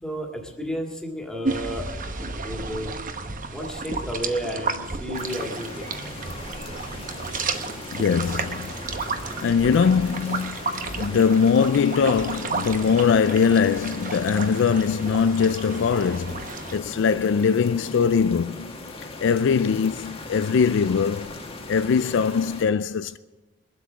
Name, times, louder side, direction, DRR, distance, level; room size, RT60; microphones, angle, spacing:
voice 1, 0.0-1.9 2.4-2.9 3.5-5.9, equal, 5° left, 2.0 m, -32 dB
sound 1, 1.4-16.8, right 4 dB, 45° right, 0.9 m, -33 dB
sound 2, 5.1-22.7, left 2 dB, 30° left, 1.3 m, -39 dB
voice 2, 7.9-8.7 9.4-16.5 16.7-18.8 19.2-21.3 21.7-23.2, left 6 dB, 65° left, 0.4 m, -21 dB
22.0 x 8.1 x 6.1 m
head